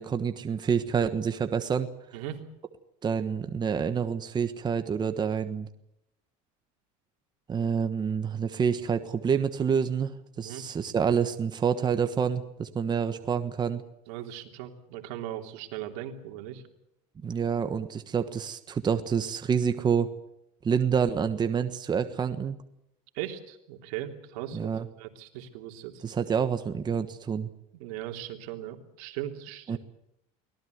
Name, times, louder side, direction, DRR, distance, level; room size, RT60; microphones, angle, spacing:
voice 1, 0.0-1.9 3.0-5.7 7.5-13.8 17.2-20.1 20.6-22.6 24.5-24.9 26.0-27.5 29.7-29.8, right 7 dB, 25° right, 9 dB, 1.4 m, -27 dB
voice 2, 14.1-16.6 23.1-24.7 25.0-26.0 27.8-29.8, right 12 dB, 80° right, 5 dB, 3.3 m, -38 dB
24.0 x 18.0 x 8.1 m, 0.79 s
cardioid pair, 130°, 17 cm